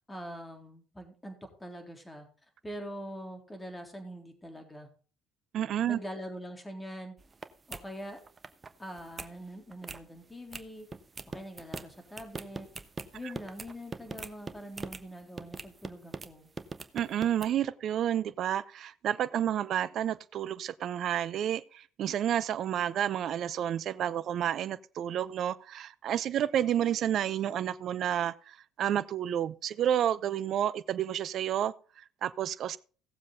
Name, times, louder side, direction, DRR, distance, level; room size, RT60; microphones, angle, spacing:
voice 1, 0.1-2.3 2.6-4.9 5.9-7.1 7.7-8.2 8.8-10.9 11.3-12.7 13.1-16.5, equal, 15° left, 3.6 m, -43 dB
voice 2, 5.5-6.0 16.9-32.8, right 10 dB, 55° right, 0.6 m, -30 dB
sound 1, 7.2-7.4 7.7-7.8 8.2-8.7 9.0-9.3 9.7-10.0 10.5-10.6 10.9-15.0 15.4-16.3 16.6-17.5, right 4 dB, 30° right, 1.1 m, -41 dB
17.0 x 7.4 x 3.9 m
hypercardioid pair, 65°, 0 cm